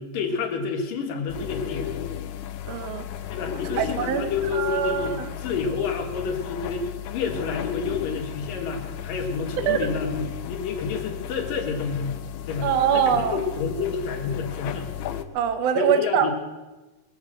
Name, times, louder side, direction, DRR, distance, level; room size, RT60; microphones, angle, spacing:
voice 1, 0.0-2.1 3.3-12.2 12.4-14.9 15.7-16.3, left 5 dB, 90° left, 2 dB, 3.5 m, -29 dB
sound 1, 1.3-15.2, left 10 dB, 75° left, 1.9 m, -34 dB
voice 2, 2.7-3.0 3.7-5.3 9.6-9.8 12.6-13.4 15.3-16.3, right 8 dB, 65° right, 7 dB, 1.8 m, -23 dB
21.0 x 7.5 x 7.7 m, 1.1 s
omnidirectional pair, 3.8 m